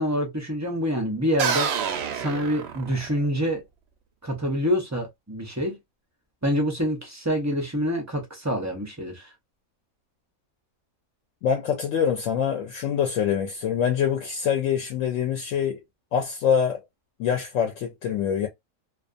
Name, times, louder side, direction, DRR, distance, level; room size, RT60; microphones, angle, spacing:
voice 1, 0.0-1.7 2.1-3.6 4.2-5.8 6.4-9.3, equal, 25° right, 0.3 m, -26 dB
sound 1, 1.4-3.3, right 7 dB, 65° right, 0.6 m, -28 dB
voice 2, 11.4-15.8 16.1-16.8 17.2-18.5, left 8 dB, 70° left, 0.9 m, -25 dB
2.4 x 2.3 x 2.4 m
omnidirectional pair, 1.5 m